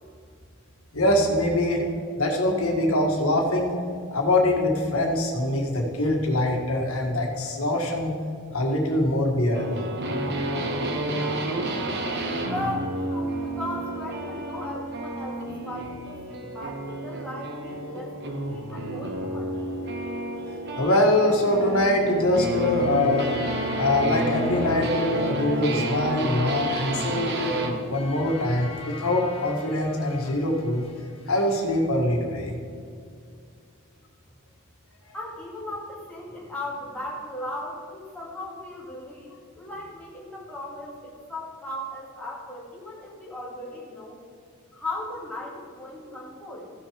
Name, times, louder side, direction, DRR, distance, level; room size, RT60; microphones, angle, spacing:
voice 1, 0.9-1.8 2.2-3.8 4.1-8.1 8.5-9.8 20.8-23.3 23.8-27.6 27.9-30.8 31.3-32.5, left 1 dB, 75° left, 1 dB, 1.7 m, -23 dB
sound 1, 9.5-27.8, right 1 dB, 50° right, 1.2 m, -30 dB
voice 2, 12.5-19.6 35.1-44.2 44.7-46.7, left 1 dB, 5° left, -5 dB, 2.3 m, -37 dB
sound 2, 22.8-31.6, equal, 25° left, 1.3 m, -41 dB
15.0 x 6.3 x 5.0 m, 2.3 s
head